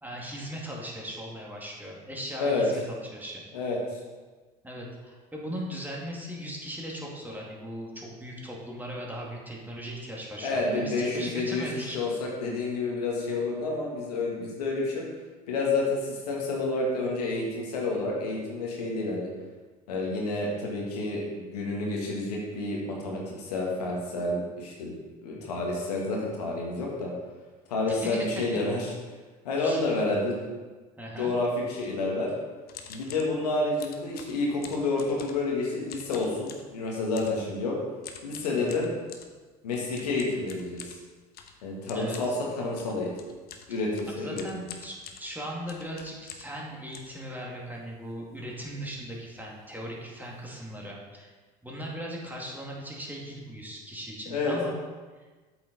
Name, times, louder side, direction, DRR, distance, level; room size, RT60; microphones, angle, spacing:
voice 1, 0.0-3.4 4.6-12.0 25.4-25.7 27.9-28.3 29.6-29.8 31.0-31.4 38.5-38.9 41.9-42.4 44.1-51.3 51.6-54.7 55.1-55.3, equal, 10° right, -3 dB, 2.4 m, -38 dB
voice 2, 3.5-4.0 10.4-11.7 11.9-15.0 15.5-19.3 19.9-24.9 25.2-27.1 27.7-28.9 29.4-30.5 31.2-32.3 32.9-37.8 38.2-38.9 39.6-40.9 41.6-42.3 42.5-43.1 43.7-44.4 54.3-54.5, left 3 dB, 85° left, -2 dB, 1.7 m, -29 dB
sound 1, 32.7-33.3 33.8-35.5 35.9-36.7 37.1-37.4 38.0-39.3 39.9-46.6 46.9-47.8 48.3-48.4 48.5-48.8 49.1-49.3 49.9-50.0 50.2-50.5, left 7 dB, 50° left, 1.0 m, -46 dB
8.2 x 6.9 x 4.0 m, 1.3 s
hypercardioid pair, 65°, 20 cm